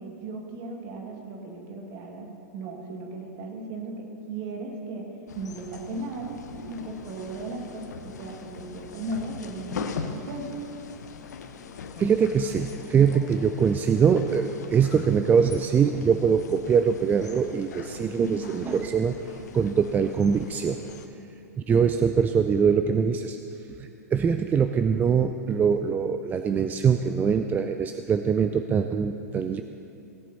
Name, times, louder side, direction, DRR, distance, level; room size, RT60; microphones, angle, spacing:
voice 1, 0.0-10.8 18.0-18.5, right 2 dB, 45° right, 1 dB, 2.3 m, -36 dB
sound 1, 5.3-21.1, left 6 dB, 75° left, 0.9 m, -41 dB
voice 2, 12.0-19.2 19.5-20.8 21.6-23.4 23.8-29.6, right 6 dB, 20° right, 8 dB, 0.4 m, -23 dB
17.5 x 7.5 x 4.1 m, 2.7 s
hypercardioid pair, 110°, 9 cm